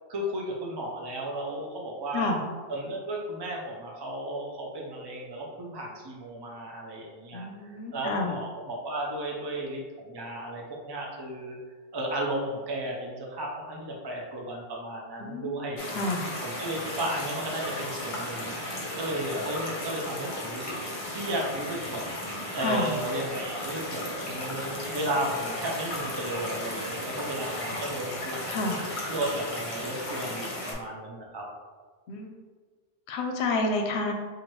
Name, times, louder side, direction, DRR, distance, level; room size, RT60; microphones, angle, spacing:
voice 1, 0.1-2.3 2.7-11.6 11.9-15.8 16.4-18.5 19.0-20.8 21.1-28.6 29.0-31.5, right 1 dB, 40° right, -2 dB, 0.3 m, -34 dB
voice 2, 7.3-8.3 15.2-15.5 15.9-16.3 22.6-22.9 27.7-27.8 28.5-28.8 32.1-32.3 33.1-34.1, left 2 dB, 80° left, 3 dB, 0.8 m, -29 dB
sound 1, 15.8-30.7, left 1 dB, 35° left, 0.7 m, -35 dB
4.3 x 2.5 x 3.0 m, 1.5 s
omnidirectional pair, 1.1 m